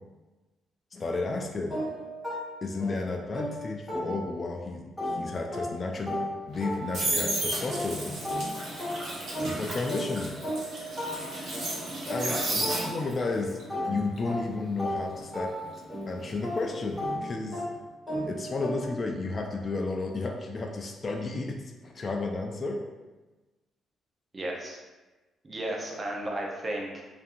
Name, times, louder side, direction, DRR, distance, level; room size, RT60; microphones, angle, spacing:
voice 1, 0.9-1.8 2.6-6.2 6.5-8.2 9.4-10.4 12.1-13.6 13.9-15.5 16.1-17.6 18.3-22.8, left 3 dB, 35° left, 2 dB, 0.3 m, -32 dB
sound 1, 1.7-4.6 5.0-13.3 13.7-19.1, equal, 5° left, 1.5 m, -36 dB
sound 2, 6.5-13.3 13.6-16.5 16.8-17.1, right 2 dB, 65° right, 0.9 m, -33 dB
voice 2, 12.0-12.6 24.3-24.8 25.4-27.0, right 1 dB, 30° right, -1 dB, 0.6 m, -34 dB
2.6 x 2.5 x 2.5 m, 1.2 s
cardioid pair, 90°, 0 cm